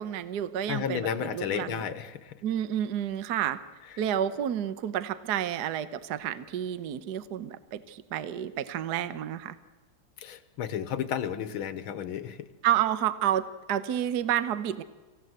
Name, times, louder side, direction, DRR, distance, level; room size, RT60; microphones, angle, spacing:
voice 1, 0.0-1.9 2.4-3.6 4.0-9.5 12.6-14.8, right 10 dB, 55° right, 13 dB, 1.3 m, -30 dB
voice 2, 0.7-2.3 10.2-12.5, left 8 dB, 75° left, 13 dB, 2.0 m, -32 dB
26.5 x 16.0 x 7.9 m, 1.3 s
omnidirectional pair, 2.4 m